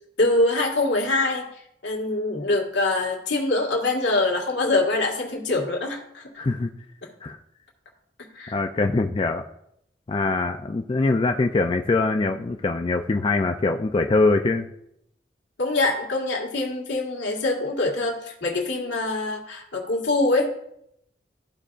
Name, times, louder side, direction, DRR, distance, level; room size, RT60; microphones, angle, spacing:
voice 1, 0.2-1.5 1.8-6.2 8.2-8.5 15.6-20.5, left 2 dB, 85° left, 1 dB, 1.8 m, -24 dB
voice 2, 6.4-6.7 7.2-7.4 8.5-9.4 10.1-14.7, left 3 dB, 30° left, 5 dB, 0.3 m, -23 dB
13.5 x 4.9 x 2.5 m, 0.74 s
head